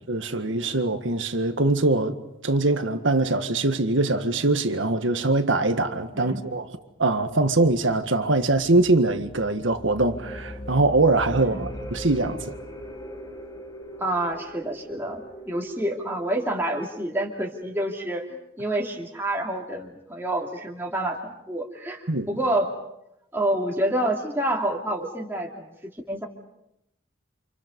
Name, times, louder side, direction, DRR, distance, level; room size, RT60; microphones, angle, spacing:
voice 1, 0.1-2.2 2.4-6.7 7.0-12.4 22.1-22.3, right 2 dB, 80° right, 1.8 m, -22 dB
sound 1, 8.4-17.6, equal, 20° left, 3.8 m, -41 dB
voice 2, 11.4-11.7 14.0-18.3 18.6-22.7 23.3-25.7 26.1-26.3, right 1 dB, 10° right, 2.6 m, -28 dB
30.0 x 27.5 x 5.4 m
head